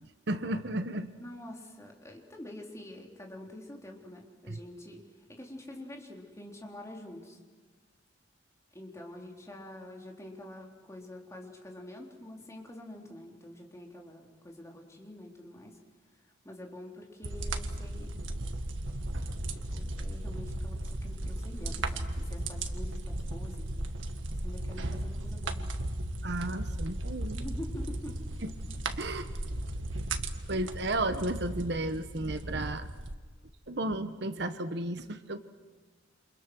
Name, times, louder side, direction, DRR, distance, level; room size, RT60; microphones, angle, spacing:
voice 1, 0.3-1.1 4.5-4.6 26.2-27.4 28.9-29.3 30.5-32.9 33.7-35.4, right 1 dB, 60° right, 10 dB, 1.2 m, -33 dB
voice 2, 1.2-5.0 5.3-7.4 8.7-15.8 16.4-18.1 19.5-23.7 24.4-25.7 27.3-28.4, left 1 dB, 15° left, 0 dB, 3.8 m, -46 dB
sound 1, 17.2-33.1, right 1 dB, 90° right, 1.7 m, -36 dB
29.0 x 27.5 x 6.3 m, 1.4 s
head